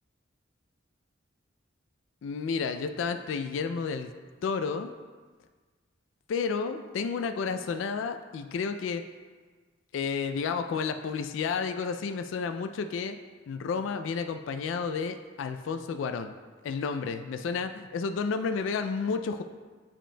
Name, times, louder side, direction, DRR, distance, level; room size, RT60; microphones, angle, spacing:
voice 1, 2.2-4.1 4.4-4.9 6.3-9.0 9.9-13.2 13.5-16.3 16.6-19.4, left 5 dB, 75° left, 8 dB, 0.3 m, -31 dB
8.7 x 5.0 x 2.2 m, 1.4 s
head